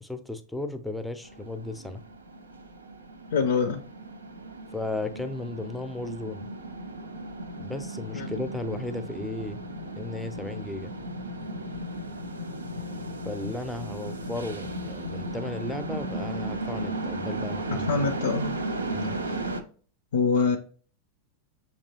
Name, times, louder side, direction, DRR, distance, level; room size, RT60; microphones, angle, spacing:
voice 1, 0.0-2.0 4.7-6.5 7.6-9.6 10.0-10.9 13.2-17.9 18.9-19.2, left 2 dB, ahead, 0.5 m, -35 dB
sound 1, 1.2-19.6, right 1 dB, 75° right, 0.5 m, -35 dB
voice 2, 3.3-3.8 8.1-8.3 17.9-18.5 19.2-19.4 20.1-20.6, left 5 dB, 65° left, 0.4 m, -25 dB
6.6 x 2.9 x 2.8 m
figure-of-eight pair, 90°, 0 cm